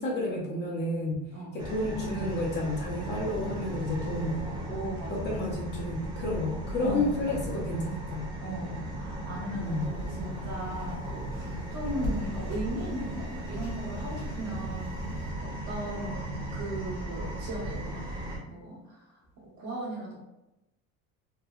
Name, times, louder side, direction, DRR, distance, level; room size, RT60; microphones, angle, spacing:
voice 1, 0.0-4.4 5.1-8.3 9.5-10.0, left 1 dB, 35° left, -2 dB, 0.5 m, -31 dB
sound 1, 1.6-18.4, right 1 dB, 15° right, 0.6 m, -36 dB
voice 2, 4.7-5.4 6.8-7.2 8.4-14.9 15.4-16.2 16.5-18.1 18.5-19.0 19.6-20.2, right 1 dB, 55° right, -5 dB, 1.2 m, -37 dB
sound 2, 9.6-15.3, left 2 dB, 50° left, 0.8 m, -41 dB
3.0 x 2.1 x 2.3 m, 0.93 s
cardioid pair, 155°, 31 cm